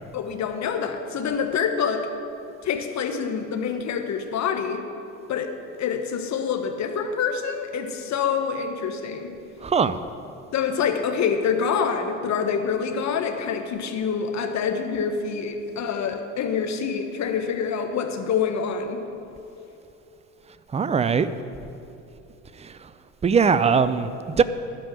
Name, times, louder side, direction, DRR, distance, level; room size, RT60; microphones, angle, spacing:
voice 1, 0.1-2.1 2.6-4.8 5.3-5.5 5.8-9.3 10.5-19.0, left 6 dB, 45° left, 5 dB, 1.4 m, -26 dB
voice 2, 9.6-10.0 20.7-21.3 22.6-22.7 23.2-24.4, right 6 dB, 15° right, 14 dB, 0.5 m, -20 dB
12.5 x 5.3 x 9.1 m, 2.9 s
hypercardioid pair, 65°, 38 cm